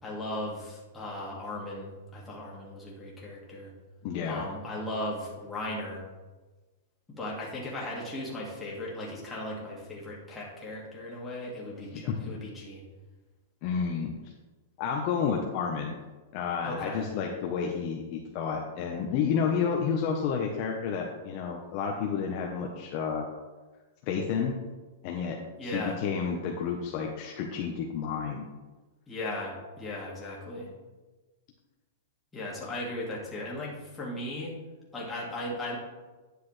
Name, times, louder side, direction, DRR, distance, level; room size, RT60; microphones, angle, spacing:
voice 1, 0.0-3.7 4.2-6.0 7.1-12.9 16.6-17.1 25.6-26.0 29.1-30.7 32.3-34.5 34.9-35.8, left 1 dB, 10° left, -5 dB, 2.1 m, -37 dB
voice 2, 4.0-4.5 11.9-12.2 13.6-14.1 14.8-16.0 16.3-23.3 24.1-24.5 25.0-28.5, left 6 dB, 40° left, 0 dB, 0.9 m, -30 dB
9.8 x 6.7 x 3.3 m, 1.2 s
supercardioid pair, 160°, 0 cm